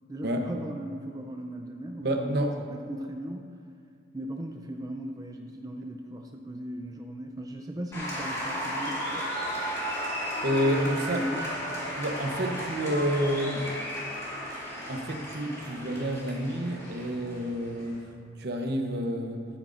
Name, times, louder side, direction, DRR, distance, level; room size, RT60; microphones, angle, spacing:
voice 1, 0.1-3.6 4.1-9.3 10.7-11.5, right 1 dB, 20° right, 2 dB, 0.4 m, -37 dB
voice 2, 2.0-2.6 10.4-11.2 12.0-13.7 14.9-18.1 18.4-19.4, equal, 60° right, 4 dB, 0.9 m, -29 dB
Applause, 7.9-18.0, equal, 15° left, 2.3 m, -34 dB
12.5 x 8.9 x 2.5 m, 2.3 s
head